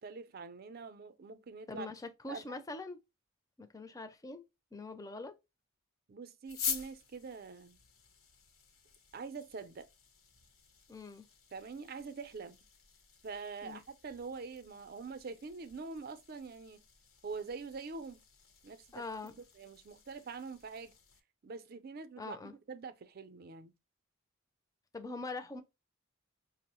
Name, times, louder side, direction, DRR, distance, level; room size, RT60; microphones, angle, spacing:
voice 1, 0.0-1.9 2.3-2.6 6.1-7.8 9.1-9.9 11.5-12.6 13.2-16.8 17.2-18.2 18.6-19.0 19.6-21.0 21.4-23.7, right 4 dB, 45° right, 0.4 m, -45 dB
voice 2, 1.7-3.0 3.6-4.4 4.7-5.3 10.9-11.3 13.6-13.8 18.9-19.3 22.2-22.5 24.9-25.6, left 3 dB, 15° left, 0.4 m, -43 dB
sound 1, 6.4-21.2, left 7 dB, 75° left, 0.9 m, -47 dB
5.1 x 2.0 x 2.9 m
head